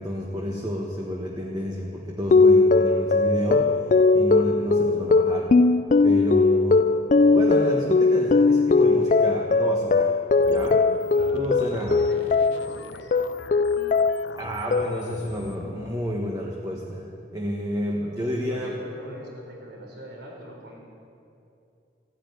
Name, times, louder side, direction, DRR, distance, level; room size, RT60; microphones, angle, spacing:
voice 1, 0.0-3.9 4.1-5.5 6.0-10.2 10.5-10.8 11.3-12.0 14.4-17.1 17.3-18.7, equal, 20° right, -1 dB, 1.2 m, -30 dB
sound 1, 2.3-12.7 13.1-14.3 14.7-15.2, left 3 dB, 40° left, 0.3 m, -20 dB
sound 2, 10.4-16.0, left 3 dB, 80° left, 0.7 m, -43 dB
voice 2, 11.7-13.2 18.0-20.8, right 1 dB, 65° right, -1 dB, 3.8 m, -43 dB
14.5 x 9.9 x 9.2 m, 2.6 s
head